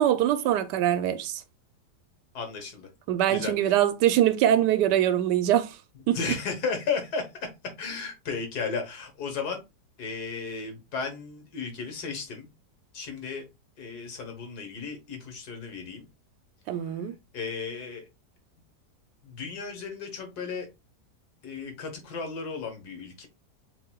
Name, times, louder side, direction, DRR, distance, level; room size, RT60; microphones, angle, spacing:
voice 1, 0.0-1.4 3.1-5.8 6.1-6.2 16.7-17.1, right 11 dB, 85° right, 1.2 m, -23 dB
voice 2, 2.3-2.9 3.3-3.8 6.1-7.3 7.8-9.6 10.0-12.5 12.9-13.5 13.8-16.0 17.3-18.1 19.2-20.7 21.4-23.3, left 5 dB, 65° left, 1.7 m, -34 dB
7.0 x 2.9 x 2.2 m
omnidirectional pair, 1.8 m